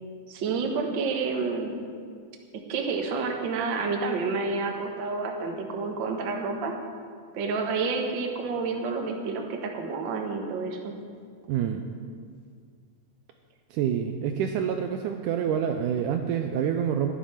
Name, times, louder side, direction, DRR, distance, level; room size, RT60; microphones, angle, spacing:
voice 1, 0.3-1.7 2.7-6.7 7.3-10.9, right 4 dB, 60° right, 2 dB, 1.2 m, -29 dB
voice 2, 11.5-11.8 13.7-17.1, right 8 dB, 80° right, 5 dB, 1.9 m, -27 dB
15.5 x 10.5 x 5.7 m, 2.1 s
omnidirectional pair, 4.1 m